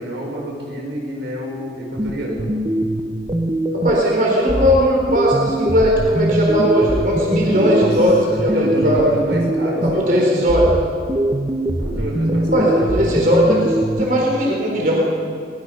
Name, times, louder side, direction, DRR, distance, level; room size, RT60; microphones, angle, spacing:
voice 1, 0.0-2.5 7.5-10.3 11.8-13.1, right 1 dB, 85° right, -1 dB, 6.2 m, -27 dB
sound 1, 2.0-4.1 4.5-10.1 10.5-14.1, right 1 dB, 25° right, 1.1 m, -22 dB
voice 2, 3.8-9.1 9.8-10.7 12.5-13.6 14.0-15.0, equal, 50° right, -2 dB, 4.3 m, -17 dB
23.0 x 22.0 x 5.6 m, 2.2 s
head